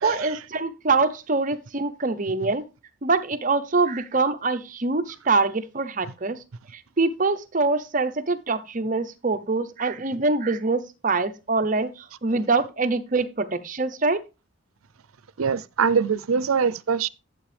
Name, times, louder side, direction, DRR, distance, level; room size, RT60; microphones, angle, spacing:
voice 1, 0.0-2.6 3.0-6.4 6.7-14.2, right 3 dB, 40° right, 0.7 m, -24 dB
voice 2, 15.4-17.1, right 6 dB, 80° right, 0.5 m, -23 dB
11.5 x 7.6 x 3.3 m
head